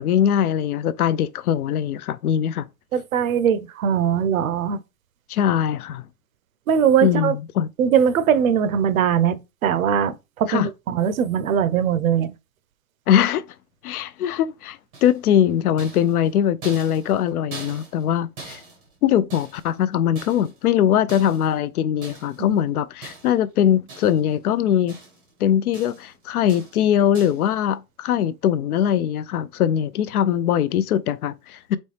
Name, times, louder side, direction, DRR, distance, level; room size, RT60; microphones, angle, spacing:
voice 1, 0.0-2.7 5.3-6.0 7.0-7.7 10.5-10.7 13.1-13.4 13.8-18.6 19.0-24.9 25.4-31.8, left 10 dB, 70° left, 0.5 m, -21 dB
voice 2, 2.9-4.8 6.7-7.3 7.8-12.3 22.4-22.6, right 8 dB, 65° right, 0.6 m, -21 dB
sound 1, 14.9-15.4 15.8-18.1 18.4-19.8 20.1-20.7 21.1-21.6 22.0-22.4 23.0-23.5 23.9-24.4 24.6-25.3 25.7-26.1 26.5-26.8 27.1-27.5, right 3 dB, 10° right, 0.6 m, -42 dB
4.2 x 3.1 x 3.3 m
hypercardioid pair, 165°, 46 cm